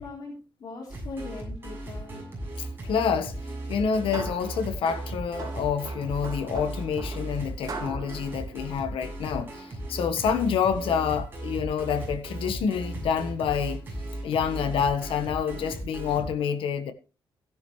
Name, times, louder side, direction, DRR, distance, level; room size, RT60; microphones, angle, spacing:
voice 1, 0.0-2.3, left 3 dB, 50° left, 3.6 m, -40 dB
sound 1, 0.9-16.3, right 1 dB, 25° right, 7.0 m, -36 dB
voice 2, 2.6-3.3 3.7-13.8 14.2-16.9, left 7 dB, 85° left, 1.4 m, -28 dB
sound 2, 3.7-9.5, right 4 dB, 45° right, 3.5 m, -42 dB
16.0 x 10.5 x 3.2 m
wide cardioid pair, 170°, 9 cm